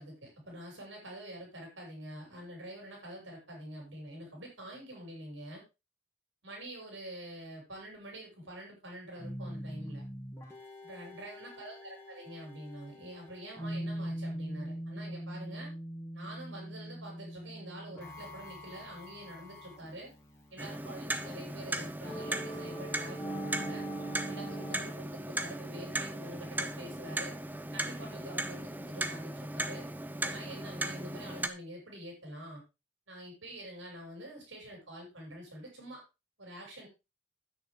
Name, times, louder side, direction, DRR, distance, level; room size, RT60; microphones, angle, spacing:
voice 1, 0.0-5.6 6.4-10.0 10.8-15.7 16.1-20.1 20.5-23.9 24.3-27.4 27.7-29.9 30.2-32.6 33.1-36.0 36.4-36.9, right 1 dB, 85° right, -1 dB, 7.1 m, -46 dB
sound 1, 9.2-24.8, right 1 dB, 15° left, 2.6 m, -42 dB
Clock, 20.6-31.5, right 2 dB, 10° right, 0.6 m, -37 dB
10.5 x 9.6 x 3.8 m, 0.27 s
head